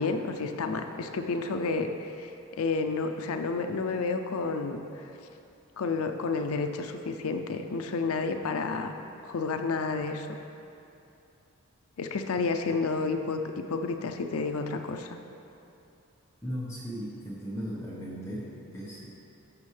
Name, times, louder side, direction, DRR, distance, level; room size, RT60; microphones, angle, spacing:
voice 1, 0.0-5.0 5.8-8.9 9.2-10.3 12.0-13.4 13.7-15.2, left 4 dB, 85° left, 6 dB, 0.5 m, -30 dB
voice 2, 16.4-19.1, equal, 15° left, -7 dB, 1.2 m, -37 dB
14.0 x 6.2 x 3.3 m, 2.7 s
head